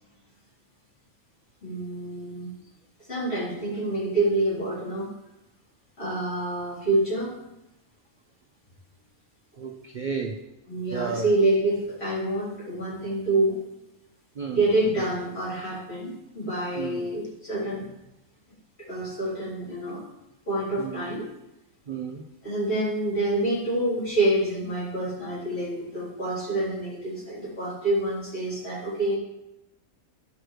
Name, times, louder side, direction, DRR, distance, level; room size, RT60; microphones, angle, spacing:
voice 1, 1.6-2.5 3.1-5.1 6.0-7.3 10.7-13.6 14.5-17.9 18.8-20.0 20.5-21.3 22.4-29.1, right 2 dB, 45° left, -9 dB, 4.1 m, -27 dB
voice 2, 9.6-10.3 10.9-11.3 14.4-14.6 16.8-17.0 20.8-21.0 21.9-22.2, right 6 dB, 50° right, 3 dB, 0.6 m, -32 dB
12.0 x 6.3 x 3.3 m, 0.92 s
omnidirectional pair, 1.5 m